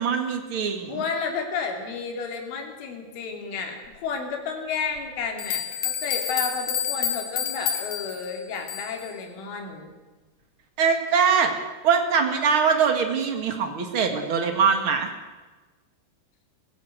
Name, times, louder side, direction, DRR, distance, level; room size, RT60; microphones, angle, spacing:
voice 1, 0.0-1.0 10.8-11.5 11.8-15.1, right 6 dB, 65° right, 5 dB, 1.3 m, -22 dB
voice 2, 0.9-9.9, left 5 dB, 80° left, 2 dB, 5.6 m, -32 dB
sound 1, 5.0-5.1 5.4-9.1, left 8 dB, 50° left, 3.3 m, -29 dB
23.5 x 16.0 x 8.0 m, 1.2 s
omnidirectional pair, 5.6 m